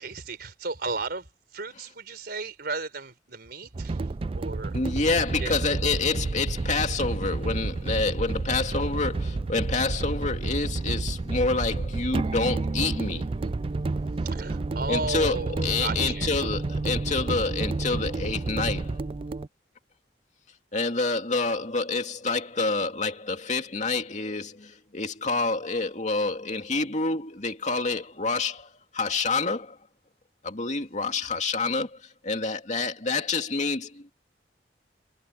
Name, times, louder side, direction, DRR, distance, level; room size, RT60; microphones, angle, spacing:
voice 1, 0.0-4.0 4.3-4.8 5.2-5.5 14.2-16.4, right 3 dB, 60° right, 4.4 m, -35 dB
sound 1, 3.7-19.5, right 3 dB, 30° right, 0.4 m, -30 dB
voice 2, 4.7-13.3 14.9-19.0 20.7-29.8 30.4-34.1, left 3 dB, 45° left, 2.5 m, -28 dB
head